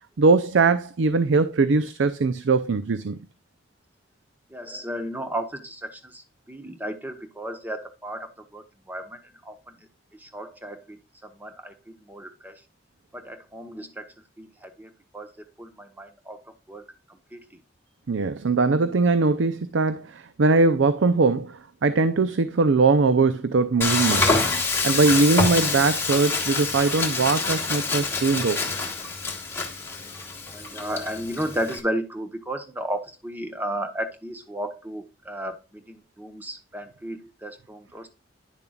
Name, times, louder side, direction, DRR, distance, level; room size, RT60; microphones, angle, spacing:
voice 1, 0.2-3.2 18.1-24.5 24.8-28.7, right 3 dB, 85° right, 0.5 m, -21 dB
voice 2, 4.5-9.7 10.1-12.6 13.1-16.8 17.1-17.6 30.5-38.1, right 1 dB, 10° right, 1.0 m, -34 dB
Frying (food), 23.8-31.8, left 3 dB, 15° left, 1.6 m, -26 dB
10.0 x 6.9 x 2.4 m
head